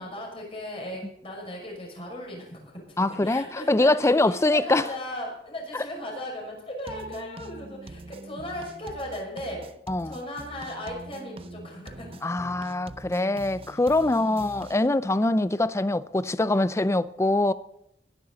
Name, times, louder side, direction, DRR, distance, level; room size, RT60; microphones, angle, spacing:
voice 1, 0.0-3.9 4.3-9.6 10.0-12.4 14.2-14.5, left 1 dB, 35° left, 6.1 m, -37 dB
voice 2, 3.0-4.9 5.7-5.9 9.9-10.2 12.2-17.5, left 2 dB, 15° left, 0.5 m, -23 dB
sound 1, 6.9-14.9, right 2 dB, 35° right, 0.5 m, -44 dB
21.5 x 10.5 x 4.0 m
head